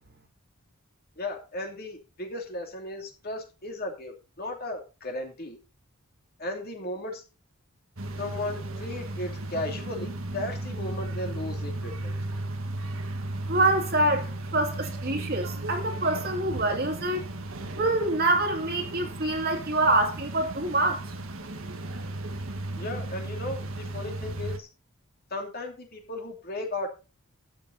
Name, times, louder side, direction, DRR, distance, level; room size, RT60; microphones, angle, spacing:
voice 1, 1.2-5.6 6.4-7.2 8.2-12.1 22.8-24.7 25.3-26.9, left 2 dB, 45° left, 2.8 m, -35 dB
sound 1, 8.0-24.6, right 2 dB, 65° right, 1.6 m, -35 dB
voice 2, 13.5-17.3 17.7-21.0, right 2 dB, 45° right, 2.6 m, -26 dB
12.5 x 8.4 x 4.0 m
head